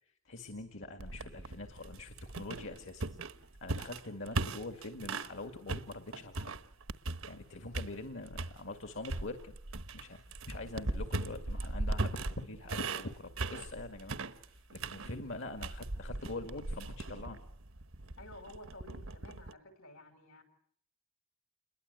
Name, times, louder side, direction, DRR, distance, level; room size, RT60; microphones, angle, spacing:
voice 1, 0.0-3.1 3.6-6.5 7.3-9.6 9.9-14.2 14.4-17.4, left 2 dB, 65° left, 7 dB, 2.1 m, -44 dB
sound 1, 1.0-5.4 5.7-7.4 7.7-8.6 9.0-19.5, right 2 dB, 80° right, 1.2 m, -39 dB
voice 2, 18.2-20.4, left 1 dB, 85° left, 8 dB, 6.4 m, -52 dB
29.0 x 22.0 x 8.3 m, 0.66 s
head